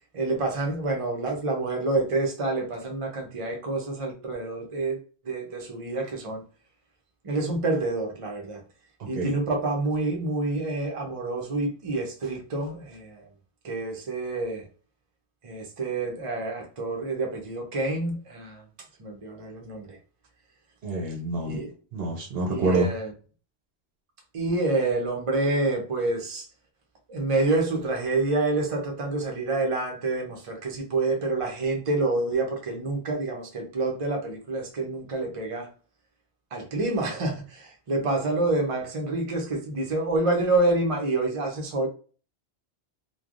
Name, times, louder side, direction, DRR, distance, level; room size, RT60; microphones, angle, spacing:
voice 1, 0.1-5.0 5.2-6.4 7.2-8.6 9.1-13.3 13.6-14.7 15.4-18.6 19.0-20.0 21.3-21.7 22.4-23.1 24.3-26.5 27.1-35.7 36.5-41.9, right 2 dB, 35° right, 0.7 m, -28 dB
voice 2, 20.8-21.6 21.9-22.9, right 2 dB, 65° right, 0.8 m, -27 dB
3.2 x 2.2 x 2.5 m
omnidirectional pair, 1.1 m